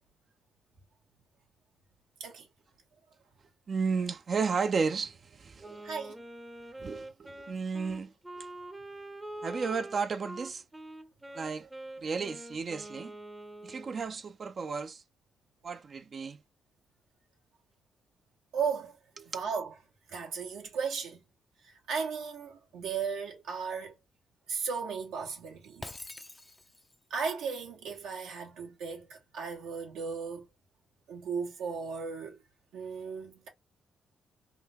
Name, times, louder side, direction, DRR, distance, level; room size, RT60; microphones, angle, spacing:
voice 1, 3.7-5.9 6.8-8.5 9.4-10.6 11.3-11.7 12.0-13.2 13.6-15.0 15.6-16.4 19.2-19.3, right 5 dB, 50° right, 0.5 m, -33 dB
Wind instrument woodwind instrument, 5.6-14.0, right 1 dB, 15° right, 0.7 m, -45 dB
voice 2, 5.8-6.2 18.5-18.9 19.3-19.7 20.1-21.2 21.9-23.9 24.5-25.9 27.1-30.5 31.1-32.4 32.7-33.5, right 5 dB, 90° right, 1.5 m, -35 dB
Shatter, 25.8-27.0, left 2 dB, 15° left, 0.5 m, -45 dB
3.7 x 2.3 x 2.9 m
cardioid pair, 70°, 0 cm